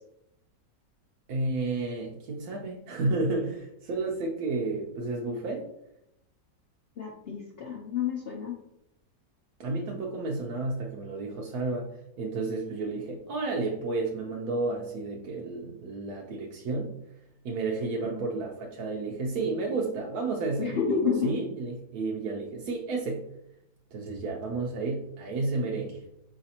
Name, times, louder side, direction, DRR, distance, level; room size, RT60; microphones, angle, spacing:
voice 1, 1.3-5.6 9.6-16.9 17.4-20.8 21.2-23.3 23.9-26.1, right 3 dB, 65° right, -1 dB, 1.0 m, -31 dB
voice 2, 7.0-8.6 18.0-18.2 20.6-21.4, left 6 dB, 70° left, -2 dB, 0.5 m, -30 dB
5.0 x 3.2 x 2.8 m, 0.81 s
omnidirectional pair, 1.9 m